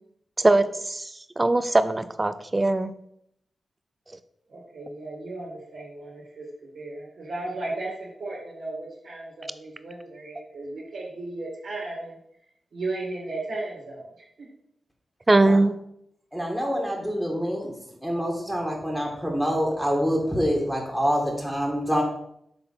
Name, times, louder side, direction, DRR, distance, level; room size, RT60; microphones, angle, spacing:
voice 1, 0.4-1.1 1.4-2.9 15.3-15.8, right 2 dB, 30° right, 12 dB, 0.6 m, -21 dB
voice 2, 4.5-12.2 12.7-14.1 14.4-14.5, right 2 dB, 70° right, -4 dB, 2.3 m, -35 dB
voice 3, 16.3-17.7 18.0-22.0, equal, ahead, -1 dB, 2.0 m, -26 dB
6.8 x 3.7 x 5.7 m, 0.74 s
cardioid pair, 45°, 0 cm